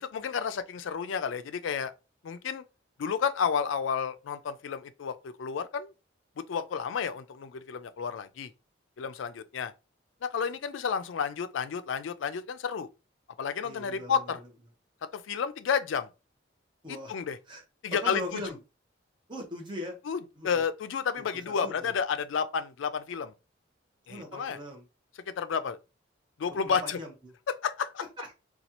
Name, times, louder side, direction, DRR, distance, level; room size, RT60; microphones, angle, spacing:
voice 1, 0.0-1.9 2.2-2.6 3.0-5.9 6.5-8.5 9.0-9.7 10.2-12.9 13.4-14.4 15.1-16.1 16.9-17.4 17.8-18.4 20.1-23.3 24.1-24.6 25.4-25.8 26.4-27.0 27.5-28.0, left 6 dB, 75° left, 0.4 m, -31 dB
voice 2, 13.6-14.2 16.8-17.2 17.5-17.6 18.0-18.6 19.3-20.0 20.4-20.6 21.3-21.9 24.1-24.9 26.6-27.3 28.2-28.4, left 1 dB, 25° right, 0.9 m, -40 dB
4.1 x 2.3 x 2.9 m
head